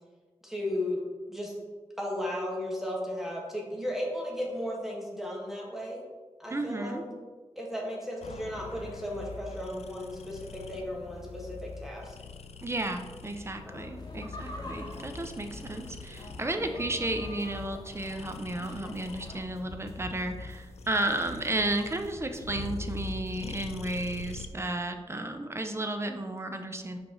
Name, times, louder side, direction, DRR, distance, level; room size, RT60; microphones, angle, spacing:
voice 1, 0.4-1.0 1.3-1.5 2.0-6.0 6.4-7.0 7.5-12.1 13.7-13.8, left 1 dB, 5° right, -3 dB, 1.4 m, -35 dB
voice 2, 6.5-7.0 12.6-27.0, right 1 dB, 25° right, 6 dB, 0.5 m, -33 dB
sound 1, 8.2-24.5, left 4 dB, 75° left, 0.4 m, -44 dB
sound 2, 14.0-19.4, left 1 dB, 40° left, 0.9 m, -45 dB
sound 3, 14.7-24.5, left 2 dB, 25° left, 0.5 m, -51 dB
5.2 x 4.9 x 3.8 m, 1.4 s
wide cardioid pair, 95°, 11 cm